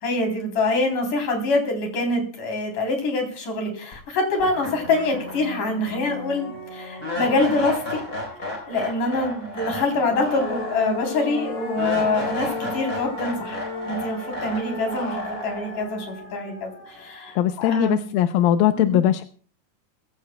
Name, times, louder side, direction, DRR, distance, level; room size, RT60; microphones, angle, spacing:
voice 1, 0.0-8.1 8.4-13.6 13.9-18.1 18.7-19.0, left 2 dB, 60° left, 3 dB, 5.0 m, -25 dB
sound 1, 3.9-4.0 4.4-17.5, left 2 dB, 25° left, 4.4 m, -32 dB
voice 2, 17.4-19.2, left 11 dB, 85° left, 8 dB, 2.5 m, -20 dB
21.0 x 16.0 x 2.2 m, 0.42 s
omnidirectional pair, 4.0 m